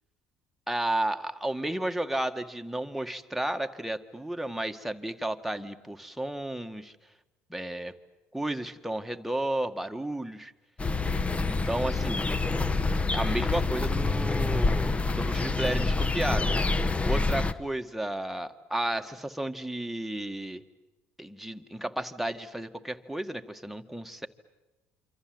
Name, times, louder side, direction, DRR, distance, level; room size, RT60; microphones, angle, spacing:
voice 1, 0.7-6.9 7.5-8.0 8.3-10.5 11.5-12.2 13.1-16.5 17.1-20.6 21.2-24.3, right 1 dB, 5° right, 6 dB, 1.9 m, -32 dB
sound 1, 10.8-17.5, left 3 dB, 25° left, 1.3 m, -27 dB
27.5 x 26.0 x 7.9 m, 1.1 s
hypercardioid pair, 65°, 5 cm